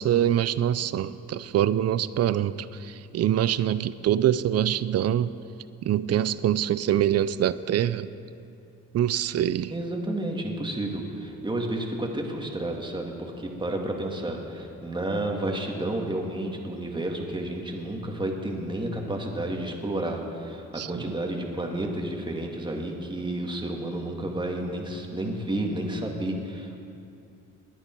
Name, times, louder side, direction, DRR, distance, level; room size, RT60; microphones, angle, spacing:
voice 1, 0.0-5.3 5.8-8.1 8.9-9.7 20.8-21.0, right 11 dB, 55° right, 16 dB, 0.5 m, -24 dB
voice 2, 9.7-26.8, right 1 dB, 15° right, 1 dB, 2.0 m, -31 dB
20.0 x 10.0 x 4.6 m, 2.6 s
cardioid pair, 90°, 30 cm